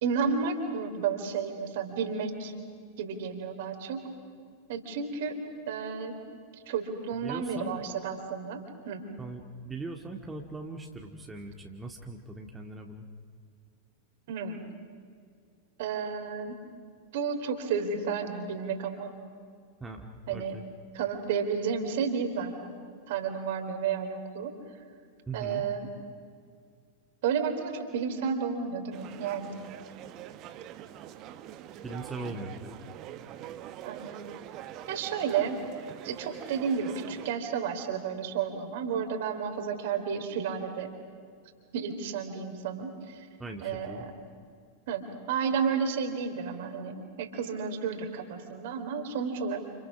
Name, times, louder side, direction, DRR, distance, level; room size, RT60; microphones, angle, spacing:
voice 1, 0.0-2.5 3.0-4.1 4.7-5.4 5.7-6.2 6.7-9.0 14.3-14.6 15.8-16.6 17.1-19.1 20.3-20.5 20.9-22.8 23.1-24.5 25.3-25.9 27.2-29.5 33.8-34.2 34.9-35.6 36.0-40.9 41.7-43.3 43.6-44.1 44.9-49.6, right 6 dB, 55° right, 5 dB, 3.5 m, -32 dB
voice 2, 7.2-7.8 9.2-13.1 19.8-20.6 25.3-25.7 31.8-32.7 43.4-44.1, right 2 dB, 10° right, 1 dB, 2.0 m, -40 dB
sound 1, 28.9-37.3, right 11 dB, 35° right, 1.3 m, -44 dB
29.5 x 29.5 x 6.1 m, 2.2 s
figure-of-eight pair, 90°, 0 cm